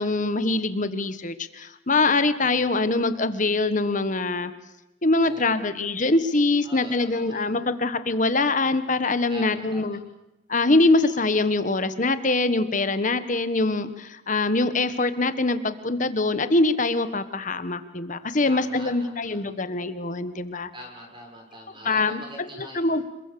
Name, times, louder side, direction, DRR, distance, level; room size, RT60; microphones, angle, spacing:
voice 1, 0.0-4.5 5.0-10.0 10.5-20.7 21.8-22.2 22.7-23.0, left 2 dB, 40° left, 11 dB, 1.3 m, -23 dB
voice 2, 6.6-7.5 9.3-10.0 18.5-19.4 20.7-22.8, equal, 25° right, 1 dB, 6.0 m, -43 dB
27.0 x 22.0 x 6.9 m, 0.93 s
head